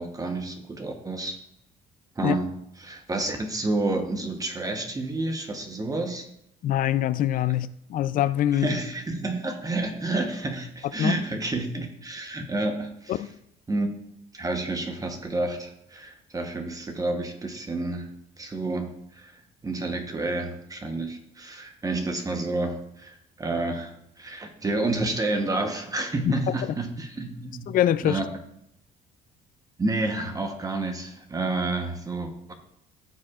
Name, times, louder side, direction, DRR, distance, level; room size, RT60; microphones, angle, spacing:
voice 1, 0.0-1.4 2.2-6.3 8.0-8.1 8.5-13.3 13.7-13.9 14.3-18.1 18.4-28.3 29.8-32.5, right 2 dB, 20° right, 1.0 m, -30 dB
voice 2, 6.6-8.7 11.0-11.2 13.2-13.3 27.7-28.2, left 11 dB, 55° left, 0.4 m, -24 dB
14.5 x 4.9 x 2.4 m
cardioid pair, 110°, 17 cm